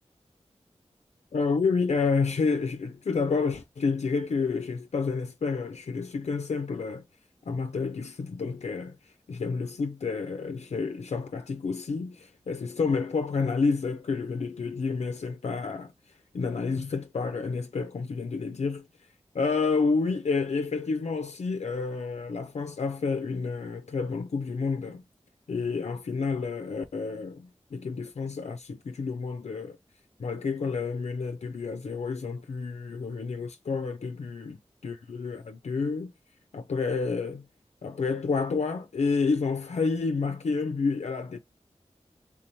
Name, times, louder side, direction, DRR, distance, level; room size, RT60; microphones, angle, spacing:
voice 1, 1.3-7.0 7.5-15.9 16.3-18.9 19.3-25.0 25.5-29.8 30.2-34.6 34.8-36.1 36.5-37.5 37.8-41.4, left 4 dB, 70° left, 0.4 m, -29 dB
3.7 x 2.9 x 2.6 m
wide cardioid pair, 60°, 12 cm